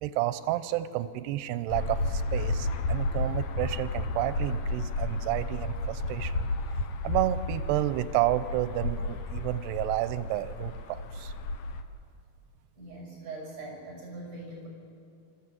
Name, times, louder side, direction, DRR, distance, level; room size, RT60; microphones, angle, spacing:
voice 1, 0.0-6.5 7.0-11.3, right 14 dB, 90° right, 13 dB, 2.8 m, -30 dB
sound 1, 1.7-11.8, left 2 dB, 75° left, 1.6 m, -32 dB
voice 2, 12.8-14.7, right 2 dB, 50° right, -1 dB, 7.5 m, -42 dB
25.0 x 14.5 x 7.6 m, 2.5 s
omnidirectional pair, 4.7 m